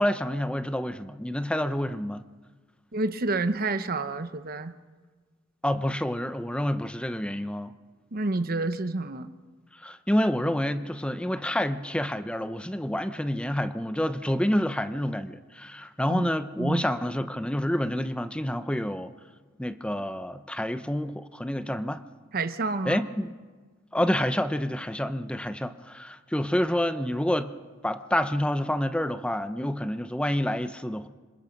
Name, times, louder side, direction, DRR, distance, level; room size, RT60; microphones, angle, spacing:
voice 1, 0.0-2.2 5.6-7.7 9.8-19.1 19.6-22.0 22.8-23.3 23.9-27.5 27.8-31.1, left 1 dB, 5° left, 11 dB, 0.8 m, -28 dB
voice 2, 2.9-4.7 8.1-9.3 16.1-16.3 16.6-16.8 22.3-23.0, right 3 dB, 50° right, 10 dB, 1.0 m, -29 dB
27.0 x 24.5 x 5.3 m, 1.4 s
head